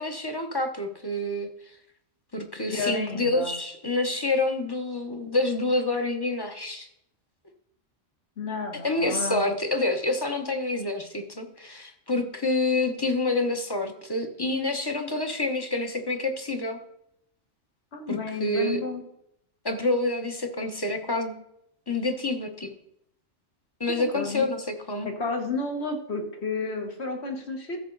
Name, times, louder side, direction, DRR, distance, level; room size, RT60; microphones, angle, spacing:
voice 1, 0.0-1.5 2.3-6.9 8.8-16.8 18.1-18.8 19.6-21.3 21.9-22.7 23.8-25.1, left 2 dB, 20° left, 5 dB, 1.0 m, -27 dB
voice 2, 2.7-3.5 8.4-9.4 17.9-19.0 23.9-24.4 25.0-27.8, left 3 dB, 60° left, 2 dB, 1.8 m, -31 dB
14.0 x 7.0 x 3.9 m, 0.77 s
omnidirectional pair, 1.2 m